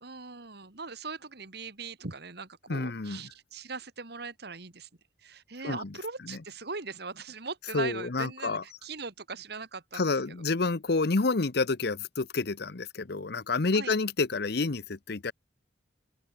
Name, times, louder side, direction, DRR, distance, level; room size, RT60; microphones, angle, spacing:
voice 1, 0.0-4.9 5.2-10.1 13.7-14.0, right 4 dB, 65° right, 2.3 m, -40 dB
voice 2, 2.7-3.3 5.6-6.0 6.2-6.4 7.7-8.6 9.9-15.3, left 3 dB, 65° left, 0.9 m, -29 dB
open air
head